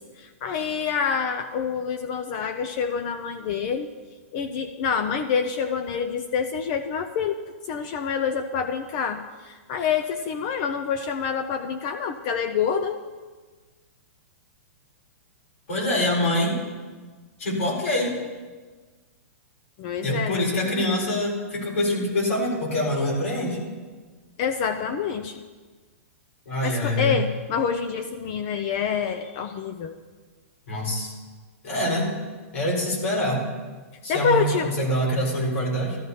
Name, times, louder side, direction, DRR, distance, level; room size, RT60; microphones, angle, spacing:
voice 1, 0.0-3.9 4.3-7.4 7.6-13.0 19.8-20.6 24.4-25.4 26.6-29.9 34.1-34.7, left 6 dB, 30° left, 8 dB, 0.4 m, -27 dB
voice 2, 15.7-16.6 17.4-18.1 20.0-23.6 26.4-27.2 30.7-31.1 31.6-32.1 32.5-33.4 34.0-36.0, left 1 dB, 70° left, -3 dB, 4.5 m, -25 dB
14.5 x 13.5 x 2.8 m, 1.4 s
hypercardioid pair, 165°, 8 cm